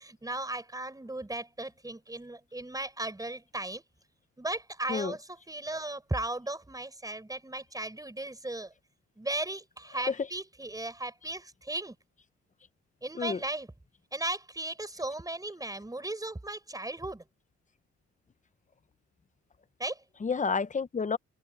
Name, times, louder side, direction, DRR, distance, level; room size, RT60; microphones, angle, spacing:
voice 1, 0.0-3.8 4.4-8.7 9.2-12.0 13.0-13.7 14.1-17.2 19.8-20.0, right 2 dB, 10° right, 6.1 m, -36 dB
voice 2, 20.2-21.2, left 5 dB, 25° left, 1.0 m, -30 dB
cardioid pair, 90°, 30 cm